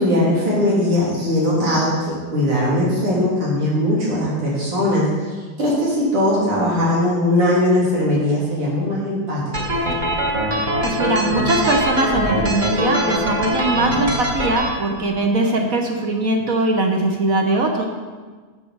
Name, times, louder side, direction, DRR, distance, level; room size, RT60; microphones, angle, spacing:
voice 1, 0.0-5.3 5.6-9.8, left 1 dB, 90° right, -6 dB, 4.1 m, -19 dB
sound 1, 9.5-14.7, equal, 25° right, 1.1 m, -22 dB
voice 2, 10.8-17.9, right 2 dB, 50° right, 2 dB, 1.1 m, -20 dB
11.5 x 7.8 x 4.7 m, 1.4 s
omnidirectional pair, 2.4 m